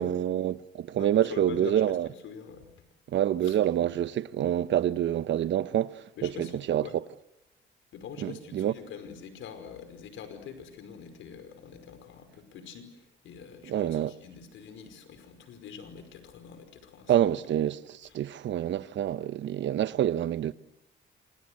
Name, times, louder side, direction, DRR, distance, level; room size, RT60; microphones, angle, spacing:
voice 1, 0.0-2.1 3.1-6.9 8.2-8.7 13.7-14.2 17.1-20.5, right 11 dB, 70° right, 1.0 m, -27 dB
voice 2, 1.0-1.8 2.2-2.7 3.5-3.6 6.2-7.0 7.9-17.3, left 6 dB, 80° left, 5.4 m, -44 dB
28.0 x 27.0 x 6.5 m
cardioid pair, 90°, 20 cm